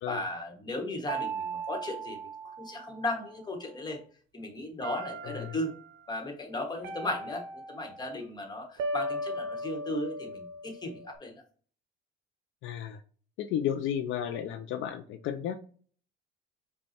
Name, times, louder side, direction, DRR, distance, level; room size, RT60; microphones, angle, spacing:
voice 1, 0.1-2.2 2.4-4.0 4.3-5.7 6.1-11.4, left 1 dB, 20° left, 3 dB, 1.1 m, -36 dB
sound 1, 1.1-3.4 4.8-5.8 6.8-8.1 8.8-11.2, right 2 dB, 70° right, 0.8 m, -37 dB
voice 2, 5.2-5.6 12.6-13.0 13.4-15.6, left 9 dB, 70° left, 8 dB, 0.5 m, -33 dB
5.4 x 2.3 x 4.2 m, 0.43 s
cardioid pair, 145°, 21 cm